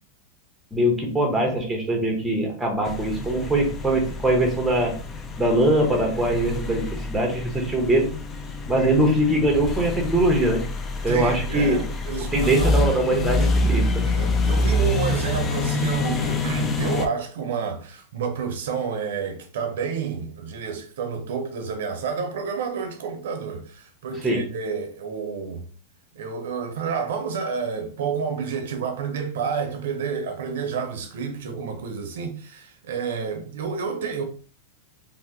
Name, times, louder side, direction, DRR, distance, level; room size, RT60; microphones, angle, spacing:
voice 1, 0.7-5.0 5.4-8.1 8.7-10.6 11.0-11.8 12.3-14.1 24.2-24.5, right 1 dB, 5° right, 0.7 m, -22 dB
sound 1, 2.9-17.1, left 2 dB, 20° left, 0.3 m, -26 dB
voice 2, 11.1-12.8 14.0-25.7 26.1-34.2, right 6 dB, 75° right, 0.6 m, -29 dB
2.7 x 2.0 x 3.4 m
supercardioid pair, 150°, 0 cm